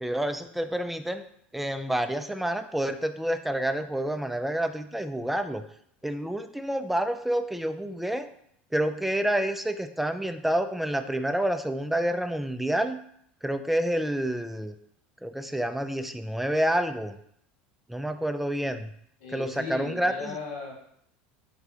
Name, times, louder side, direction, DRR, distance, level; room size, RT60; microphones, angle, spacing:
voice 1, 0.0-1.2 1.5-5.6 6.0-8.3 8.7-13.0 13.4-14.7 15.2-17.2 17.9-18.9 19.3-20.4, right 1 dB, 5° right, 9 dB, 0.3 m, -28 dB
voice 2, 19.2-20.7, left 4 dB, 80° left, -3 dB, 1.5 m, -37 dB
3.5 x 3.3 x 3.7 m, 0.70 s
hypercardioid pair, 85°, 6 cm